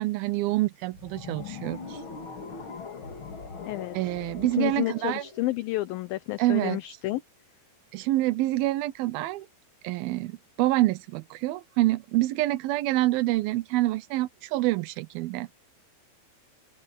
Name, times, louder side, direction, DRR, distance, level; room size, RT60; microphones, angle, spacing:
voice 1, 0.0-2.0 3.9-5.2 6.4-6.8 7.9-9.5 9.8-15.5, right 17 dB, 75° right, 2.4 m, -27 dB
sound 1, 0.9-6.2, left 5 dB, 40° left, 2.3 m, -41 dB
voice 2, 3.7-4.0 4.5-7.2, left 18 dB, 75° left, 2.2 m, -30 dB
omnidirectional pair, 4.9 m